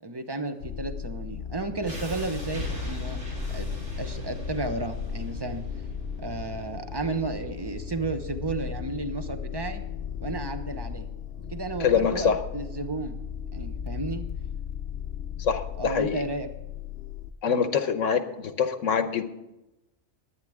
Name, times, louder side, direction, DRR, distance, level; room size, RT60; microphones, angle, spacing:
voice 1, 0.0-3.2 3.5-3.7 4.0-5.6 6.2-9.8 10.2-11.1 11.5-13.2 13.5-14.3 15.8-16.5, right 3 dB, 20° right, 7 dB, 1.0 m, -33 dB
sound 1, 0.6-17.3, left 8 dB, 55° left, 0.9 m, -37 dB
sound 2, 1.8-13.9, left 2 dB, 70° right, 4.4 m, -38 dB
voice 2, 11.8-12.4 15.4-16.2 17.4-19.2, left 6 dB, 75° left, 9 dB, 1.2 m, -25 dB
22.0 x 9.4 x 3.6 m, 0.96 s
omnidirectional pair, 1.3 m